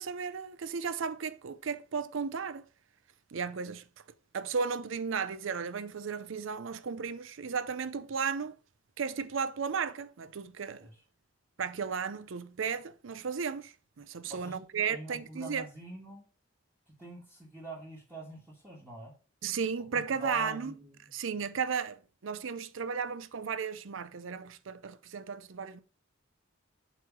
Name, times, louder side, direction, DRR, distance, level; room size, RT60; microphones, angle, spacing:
voice 1, 0.0-2.6 3.3-3.8 4.3-8.5 9.0-10.9 11.6-15.6 19.4-20.7 21.1-25.8, right 6 dB, 80° right, 0.5 m, -34 dB
voice 2, 14.2-14.6 14.9-16.3 16.9-19.1 19.8-21.1, right 1 dB, 10° right, 1.7 m, -45 dB
8.0 x 3.1 x 5.9 m
head